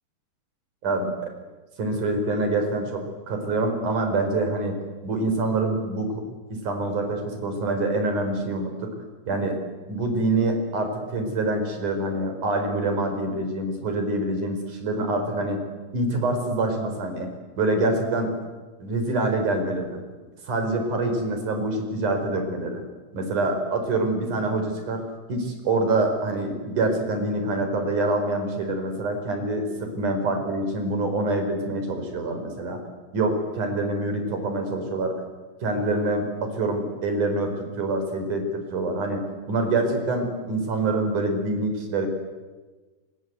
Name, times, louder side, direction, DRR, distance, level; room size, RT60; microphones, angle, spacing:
voice 1, 1.8-4.8 5.0-6.2 6.5-8.9 9.3-9.6 9.9-15.6 15.9-17.3 17.6-18.3 18.8-20.0 20.4-22.8 23.1-25.0 25.3-32.8 33.1-35.2 35.6-39.2 39.5-42.1, right 2 dB, 45° right, 6 dB, 5.7 m, -25 dB
29.5 x 25.5 x 8.1 m, 1.3 s
omnidirectional pair, 5.3 m